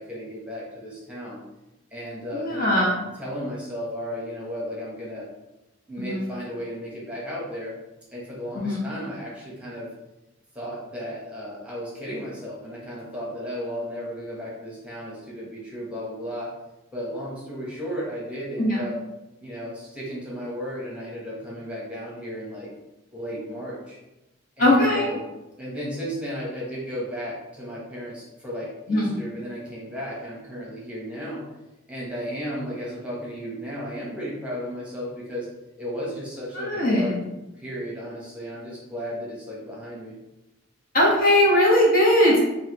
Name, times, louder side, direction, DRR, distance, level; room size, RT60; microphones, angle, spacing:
voice 1, 0.0-1.4 1.9-2.9 3.2-5.3 5.9-7.7 8.1-9.9 10.5-16.5 16.9-18.9 19.4-22.7 23.1-24.0 24.6-25.2 25.6-31.4 31.9-35.5 35.8-37.1 37.6-40.1, equal, 5° right, -6 dB, 1.1 m, -34 dB
voice 2, 2.3-3.1 6.0-6.3 8.5-8.9 18.6-18.8 24.6-25.1 28.9-29.2 36.5-37.2 40.9-42.4, left 1 dB, 50° left, -5 dB, 1.4 m, -20 dB
5.7 x 2.6 x 3.0 m, 0.96 s
head